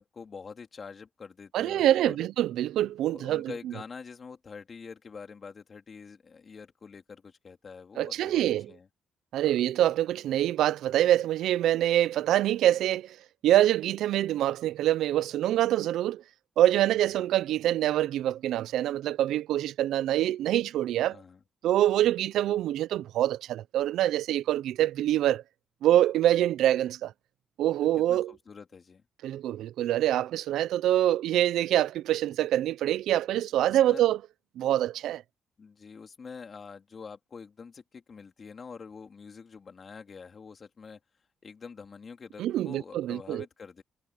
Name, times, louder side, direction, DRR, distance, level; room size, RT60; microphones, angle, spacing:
voice 1, 0.0-2.3 3.1-8.4 8.7-8.9 9.4-9.6 16.9-17.0 21.0-21.4 27.8-29.0 33.7-34.1 35.6-41.0 41.4-43.8, left 5 dB, 40° left, 3.8 m, -46 dB
voice 2, 1.5-3.5 8.0-8.7 9.3-13.2 13.4-16.2 16.6-21.2 21.6-25.4 25.8-27.1 27.6-28.3 29.2-34.2 34.6-35.2 42.4-43.4, right 12 dB, 80° right, 0.5 m, -25 dB
cardioid pair, 90°, 0 cm